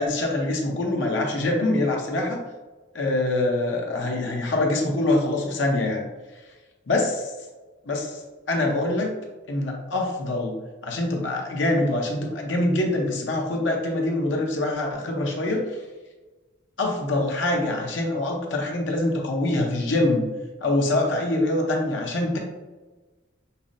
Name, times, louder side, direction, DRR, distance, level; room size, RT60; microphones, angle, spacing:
voice 1, 0.0-2.4 2.9-6.1 6.9-7.3 7.9-8.2 8.5-9.1 9.5-10.5 10.8-15.7 16.8-20.3 20.6-22.4, left 2 dB, 60° left, 0 dB, 0.8 m, -24 dB
5.5 x 2.1 x 2.5 m, 1.2 s
head